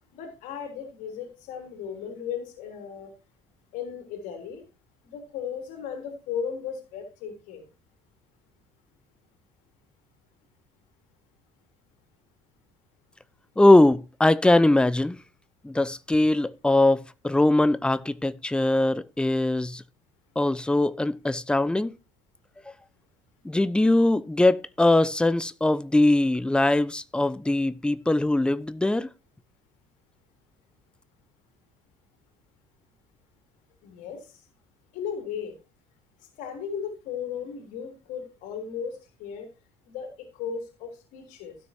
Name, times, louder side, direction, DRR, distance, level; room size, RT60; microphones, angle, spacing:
voice 1, 0.1-3.1 3.7-4.6 5.1-7.7 33.8-34.4 34.9-35.6 36.4-39.5 39.9-41.6, left 7 dB, 60° left, 3.4 m, -36 dB
voice 2, 13.6-15.2 15.6-19.8 20.4-21.9 23.4-29.1, left 2 dB, 5° left, 0.8 m, -21 dB
16.5 x 6.5 x 2.9 m
figure-of-eight pair, 60°, 15 cm